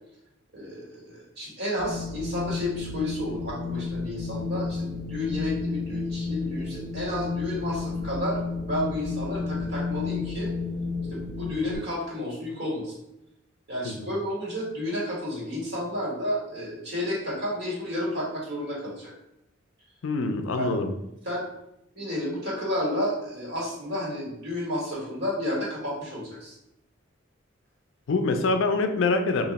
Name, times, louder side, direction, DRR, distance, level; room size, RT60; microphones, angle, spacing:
voice 1, 0.5-8.4 8.7-10.5 11.1-13.0 13.7-19.1 20.5-20.8 21.2-21.5 21.9-26.5, left 1 dB, 55° right, -4 dB, 1.5 m, -31 dB
Wind, 1.8-11.8, left 4 dB, 20° right, 0.5 m, -32 dB
voice 2, 20.0-21.0 28.1-29.5, left 3 dB, 70° left, 7 dB, 0.4 m, -25 dB
3.0 x 2.5 x 4.0 m, 0.82 s
head